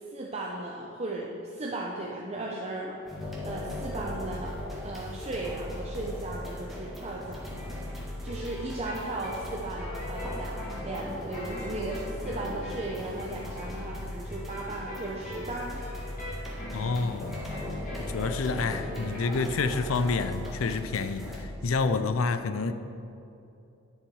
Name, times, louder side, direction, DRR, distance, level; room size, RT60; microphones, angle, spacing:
voice 1, 0.1-3.0 3.4-4.5 4.8-7.6 8.2-15.8, right 2 dB, 30° right, -3 dB, 0.8 m, -36 dB
sound 1, 3.1-21.4, left 1 dB, ahead, 1.9 m, -38 dB
sound 2, 7.5-19.5, equal, 45° left, 2.1 m, -43 dB
voice 2, 16.7-17.4 18.1-22.7, left 4 dB, 75° left, 10 dB, 0.5 m, -28 dB
11.0 x 7.1 x 4.7 m, 2.8 s
head